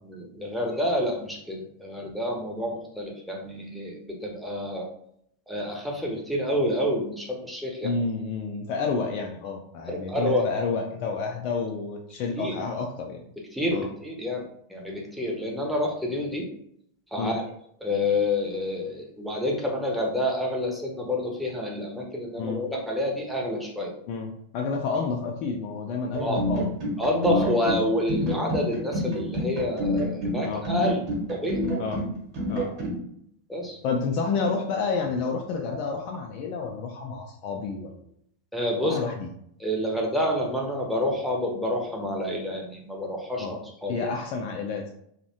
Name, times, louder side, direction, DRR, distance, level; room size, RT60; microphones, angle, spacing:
voice 1, 0.0-4.9 5.5-8.0 9.9-10.5 11.2-11.3 12.4-12.6 13.5-14.4 14.7-16.5 17.1-17.4 17.8-23.9 26.2-26.7 27.0-31.0 31.3-31.6 33.5-33.8 34.8-35.0 35.3-36.0 36.5-36.7 38.5-39.0 39.6-44.2, left 1 dB, ahead, -1 dB, 0.6 m, -28 dB
voice 2, 7.8-13.2 13.7-13.9 17.2-17.4 22.4-22.6 24.1-26.7 27.3-27.5 30.4-30.6 31.8-32.0 32.5-32.7 33.8-38.1 38.8-39.3 43.4-43.6 43.9-44.9, left 4 dB, 40° left, 2 dB, 0.3 m, -30 dB
sound 1, 26.1-33.0, equal, 40° right, 0.9 m, -28 dB
2.6 x 2.1 x 2.7 m, 0.70 s
figure-of-eight pair, 90°, 0 cm